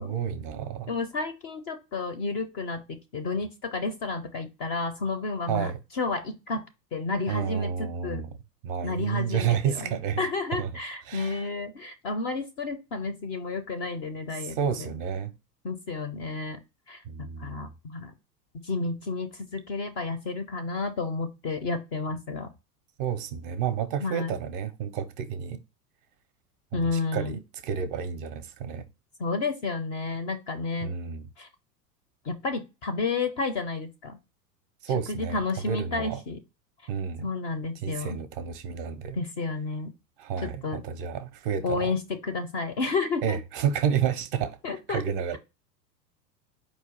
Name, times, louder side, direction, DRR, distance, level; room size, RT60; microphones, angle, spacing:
voice 1, 0.0-0.9 5.5-5.8 7.3-8.3 8.6-10.2 10.6-10.7 11.1-11.5 14.3-15.3 17.1-17.7 23.0-25.6 26.7-28.9 30.8-31.3 34.8-36.2 36.9-37.3 37.8-39.2 40.2-41.9 43.2-44.6 44.9-45.4, right 8 dB, 35° right, 0.5 m, -30 dB
voice 2, 0.9-6.7 6.9-8.3 8.8-9.9 10.2-14.9 15.6-16.6 16.9-18.1 18.5-22.5 24.0-24.3 26.7-27.3 29.2-30.9 31.4-31.5 32.2-34.2 35.1-36.4 37.2-38.2 39.1-39.9 40.4-40.8 41.6-43.4 44.6-45.0, left 3 dB, 30° left, 0.4 m, -31 dB
4.7 x 2.3 x 4.4 m
figure-of-eight pair, 90°, 50 cm